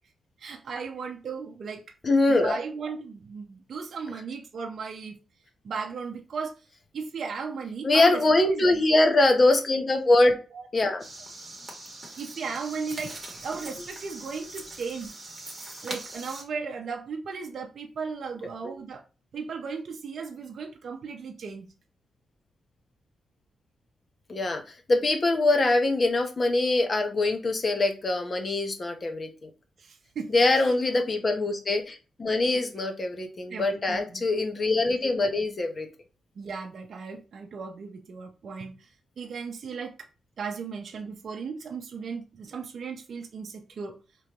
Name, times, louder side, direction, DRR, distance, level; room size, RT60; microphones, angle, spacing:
voice 1, 0.4-1.8 2.3-5.2 5.6-6.6 6.9-8.7 10.5-10.7 12.2-15.1 15.8-19.0 19.3-21.7 29.8-31.0 32.4-32.6 33.5-34.2 36.4-38.9 39.2-39.9 40.4-44.0, right 5 dB, 60° right, 0.6 m, -36 dB
voice 2, 2.0-2.6 7.8-10.3 10.7-11.0 18.6-18.7 24.3-24.6 24.9-29.5 30.3-35.9, left 2 dB, 35° left, 0.8 m, -23 dB
sound 1, 11.0-16.4, right 2 dB, 15° right, 1.3 m, -41 dB
4.9 x 3.0 x 2.9 m
wide cardioid pair, 125°, 0 cm